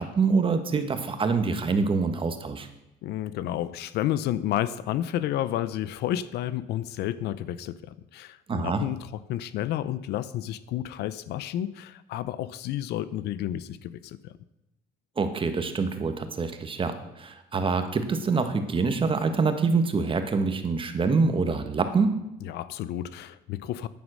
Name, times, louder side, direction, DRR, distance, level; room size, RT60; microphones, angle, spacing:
voice 1, 0.0-2.7 8.5-8.8 15.2-22.1, right 4 dB, 30° right, 8 dB, 1.4 m, -25 dB
voice 2, 3.0-14.3 22.4-23.9, left 12 dB, 75° left, 16 dB, 0.6 m, -31 dB
9.4 x 9.4 x 6.3 m, 0.91 s
cardioid pair, 110°, 17 cm